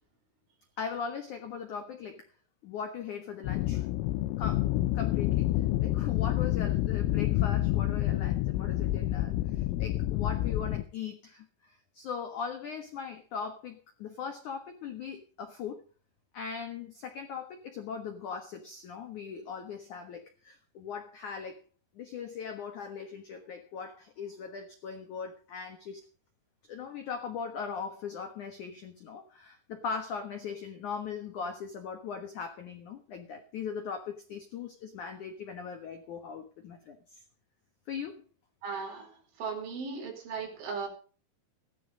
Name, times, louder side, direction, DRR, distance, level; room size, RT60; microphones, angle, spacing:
voice 1, 0.8-2.3 2.6-3.9 4.4-4.7 4.9-5.5 5.8-15.8 16.3-21.6 22.0-26.0 26.7-37.2 37.9-38.2, left 6 dB, 70° left, 6 dB, 1.9 m, -39 dB
sound 1, 3.4-10.8, left 15 dB, 90° left, 3.6 m, -28 dB
voice 2, 38.6-40.9, right 5 dB, 70° right, 2 dB, 7.0 m, -37 dB
16.5 x 11.5 x 5.1 m, 0.38 s
omnidirectional pair, 5.7 m